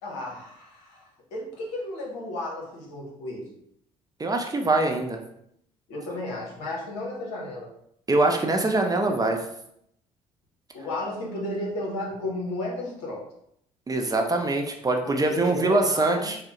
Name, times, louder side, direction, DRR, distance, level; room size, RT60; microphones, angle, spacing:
voice 1, 0.0-3.5 5.9-7.7 10.7-13.2 15.0-16.3, left 1 dB, 75° left, -2 dB, 0.9 m, -33 dB
voice 2, 4.2-5.2 8.1-9.4 13.9-16.4, right 2 dB, 20° right, 3 dB, 0.5 m, -23 dB
3.7 x 2.0 x 2.9 m, 0.72 s
hypercardioid pair, 55°, 17 cm